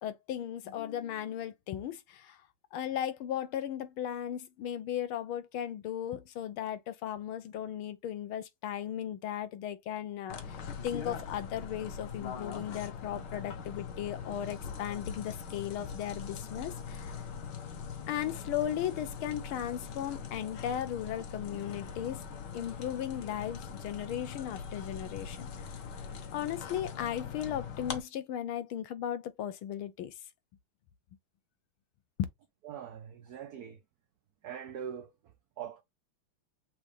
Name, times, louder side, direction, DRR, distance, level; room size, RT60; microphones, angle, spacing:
voice 1, 0.0-2.4 2.7-17.1 18.1-22.2 22.5-25.5 26.3-30.1, left 10 dB, 75° left, 1.6 m, -36 dB
sound 1, 10.3-28.0, left 6 dB, 60° left, 1.4 m, -42 dB
voice 2, 32.6-33.8 34.4-35.8, right 8 dB, 80° right, 0.8 m, -43 dB
6.1 x 2.5 x 3.3 m
omnidirectional pair, 2.4 m